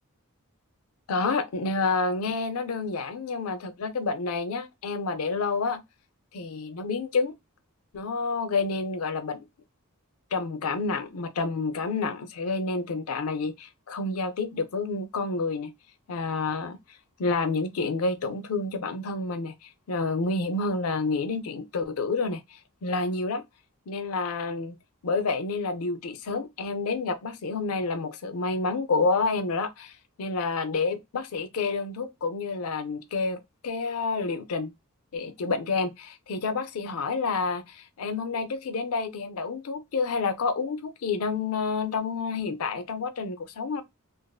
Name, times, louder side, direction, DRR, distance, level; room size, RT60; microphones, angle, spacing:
voice 1, 1.1-5.8 6.3-7.3 7.9-9.4 10.3-15.7 16.1-16.8 17.2-23.4 23.9-24.8 25.0-34.7 35.1-43.8, left 4 dB, 75° left, 0.5 m, -29 dB
2.5 x 2.5 x 2.2 m
head